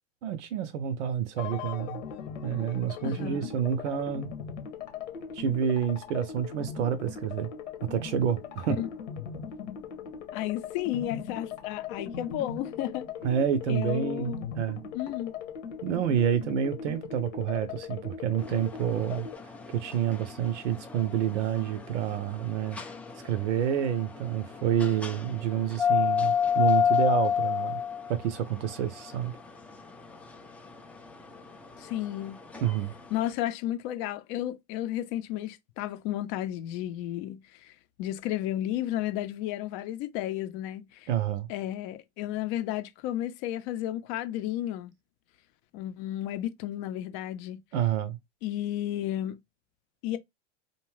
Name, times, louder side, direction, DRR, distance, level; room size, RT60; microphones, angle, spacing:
voice 1, 0.2-2.0 2.4-4.3 5.3-7.5 7.9-8.8 13.2-14.8 15.8-19.3 19.7-22.8 23.2-27.8 28.1-29.3 32.6-32.9 41.1-41.5 47.7-48.2, right 9 dB, 75° right, 0.6 m, -28 dB
sound 1, 1.4-19.4, left 7 dB, 80° left, 1.0 m, -40 dB
voice 2, 3.0-3.5 8.8-8.9 10.3-13.1 13.7-14.5 14.9-15.3 31.8-32.4 33.1-37.7 38.0-41.1 41.5-44.9 45.7-47.6 48.4-49.4 50.0-50.2, left 13 dB, 45° left, 0.6 m, -33 dB
sound 2, 18.4-33.3, left 7 dB, 5° left, 0.3 m, -32 dB
2.6 x 2.2 x 3.1 m
hypercardioid pair, 105°, 36 cm